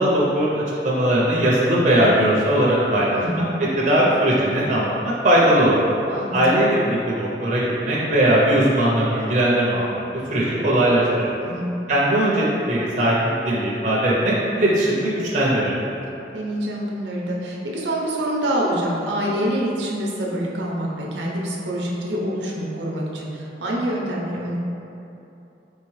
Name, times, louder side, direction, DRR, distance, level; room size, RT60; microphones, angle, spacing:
voice 1, 0.0-5.8 6.3-10.0 10.3-11.3 11.9-15.7, right 1 dB, 45° right, -6 dB, 0.6 m, -19 dB
voice 2, 3.1-3.5 6.1-6.4 11.4-11.7 16.3-24.6, right 1 dB, 80° right, -3 dB, 0.7 m, -26 dB
4.6 x 3.3 x 3.1 m, 2.9 s
head